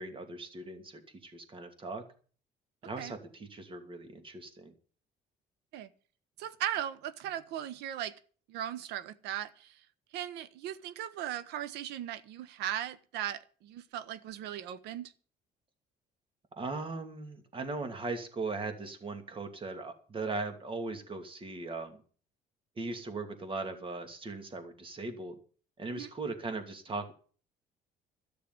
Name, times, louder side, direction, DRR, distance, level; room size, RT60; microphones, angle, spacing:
voice 1, 0.0-2.0 2.8-4.7 16.6-22.0 22.8-25.4 25.8-27.1, right 3 dB, 30° right, 2.7 m, -39 dB
voice 2, 6.4-8.1 8.5-9.8 10.1-15.1 25.9-26.1, right 11 dB, 85° right, 1.2 m, -38 dB
13.0 x 6.8 x 9.5 m
cardioid pair, 110°, 17 cm